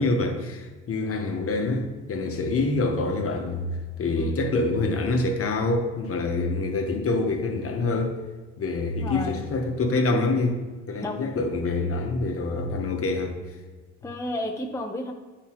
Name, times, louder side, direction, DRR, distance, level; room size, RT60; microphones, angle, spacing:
voice 1, 0.0-3.6 4.0-8.1 8.6-10.6 10.9-13.4, left 3 dB, 50° left, 4 dB, 1.1 m, -26 dB
voice 2, 9.0-9.4 11.0-11.1 14.0-15.1, left 1 dB, 10° left, 2 dB, 0.5 m, -32 dB
9.0 x 4.9 x 3.0 m, 1.3 s
cardioid pair, 90°, 30 cm